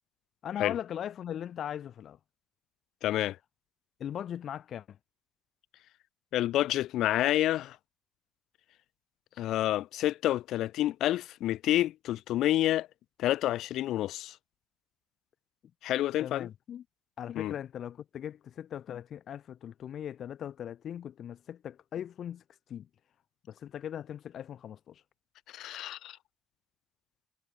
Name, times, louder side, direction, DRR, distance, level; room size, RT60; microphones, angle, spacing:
voice 1, 0.4-2.2 4.0-5.0 16.2-16.8 17.2-22.4 22.7-22.9 23.5-25.0, left 9 dB, 65° left, 5.8 m, -39 dB
voice 2, 3.0-3.4 6.3-7.8 9.4-12.9 13.2-14.4 15.8-16.5 17.3-17.5 25.5-26.2, left 14 dB, 85° left, 6.8 m, -28 dB
cardioid pair, 90°, 0 cm